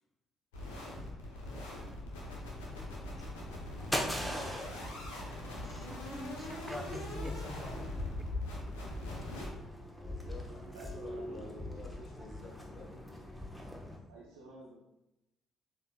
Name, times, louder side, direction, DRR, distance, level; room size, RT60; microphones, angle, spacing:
sound 1, 0.5-9.5, left 1 dB, 80° left, 0.8 m, -42 dB
sound 2, 2.7-14.0, left 1 dB, 5° left, 0.9 m, -41 dB
voice 1, 5.6-7.5 8.2-8.3 8.8-9.1, right 1 dB, 15° right, 7 dB, 0.5 m, -49 dB
voice 2, 9.9-13.3, left 2 dB, 50° left, -1 dB, 1.3 m, -51 dB
voice 3, 10.7-12.0 14.1-14.7, right 1 dB, 85° right, -7 dB, 0.6 m, -51 dB
7.0 x 2.8 x 2.3 m, 0.92 s
hypercardioid pair, 45°, 0 cm